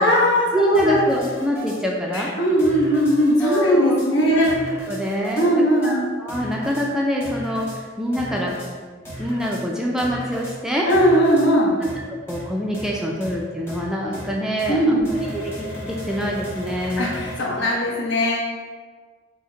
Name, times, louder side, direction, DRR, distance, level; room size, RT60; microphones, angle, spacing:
voice 1, 0.0-1.0 2.1-4.5 5.3-6.1 10.8-11.7 14.7-15.1 17.0-18.4, equal, 70° left, -4 dB, 1.0 m, -19 dB
voice 2, 0.5-2.3 3.4-4.0 4.3-4.5 4.9-5.5 5.8-8.5 9.2-10.9 12.3-17.1, equal, 5° right, -2 dB, 0.3 m, -25 dB
sound 1, 0.7-1.8 2.1-2.2 2.6-3.6 4.0-4.1 4.4-5.5 5.8-5.9 6.3-6.8 7.2-7.8 8.1-8.7 9.0-9.6 10.0-10.5 10.9-11.5 11.8-12.0 12.3-12.4 12.7-12.9 13.2-13.3 13.7-13.8 14.1-14.3 14.6-14.7 15.0-17.4, equal, 15° left, 0.9 m, -35 dB
4.9 x 2.1 x 3.9 m, 1.5 s
head